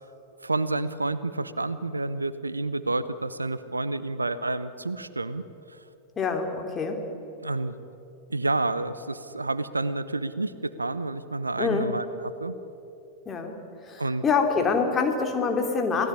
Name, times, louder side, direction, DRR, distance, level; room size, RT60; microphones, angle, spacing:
voice 1, 0.4-5.4 5.7-5.8 7.4-7.7 8.3-12.5 14.0-14.2, right 2 dB, 80° right, 15 dB, 0.9 m, -29 dB
voice 2, 6.2-7.0 11.6-11.9 13.2-13.6 13.9-16.1, left 5 dB, 20° left, 3 dB, 3.4 m, -25 dB
27.5 x 17.5 x 9.8 m, 2.9 s
figure-of-eight pair, 90°, 0 cm